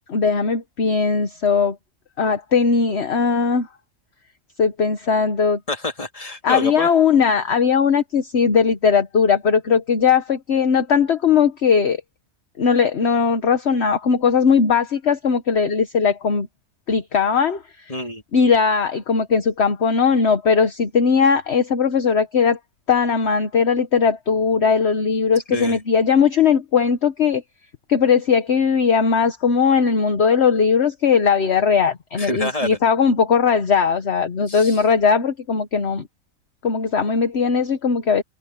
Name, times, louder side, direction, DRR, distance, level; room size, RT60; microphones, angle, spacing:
voice 1, 0.1-1.8 2.2-3.7 4.6-5.6 6.4-12.0 12.6-16.5 16.9-17.6 18.3-22.6 22.9-27.4 27.9-36.1 36.6-38.2, left 6 dB, 50° left, 1.3 m, -19 dB
voice 2, 5.7-6.9 17.9-18.2 25.5-25.8 32.1-32.8 34.5-34.8, left 2 dB, 25° left, 2.4 m, -27 dB
omnidirectional pair, 1.4 m